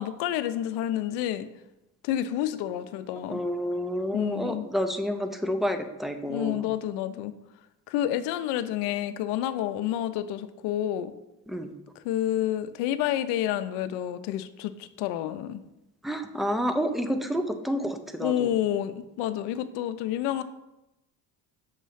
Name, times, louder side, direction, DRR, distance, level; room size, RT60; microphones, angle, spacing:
voice 1, 0.0-1.5 2.0-3.4 4.1-4.7 6.3-7.3 7.9-11.1 12.0-15.6 18.2-20.4, left 11 dB, 85° left, 11 dB, 0.6 m, -29 dB
voice 2, 3.3-6.7 11.5-11.7 16.0-18.5, equal, ahead, 7 dB, 0.3 m, -29 dB
6.5 x 3.1 x 5.5 m, 0.91 s
cardioid pair, 115°, 39 cm